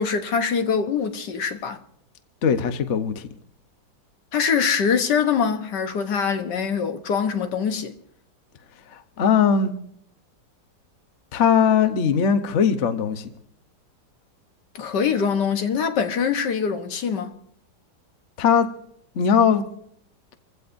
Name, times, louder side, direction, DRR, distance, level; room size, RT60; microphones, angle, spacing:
voice 1, 0.0-1.8 4.3-7.9 14.7-17.3, left 6 dB, 65° left, 1.6 m, -23 dB
voice 2, 2.4-3.2 8.9-9.7 11.3-13.3 18.4-18.7 19.1-19.6, left 7 dB, 50° left, 1.0 m, -20 dB
27.5 x 16.0 x 2.6 m
omnidirectional pair, 2.0 m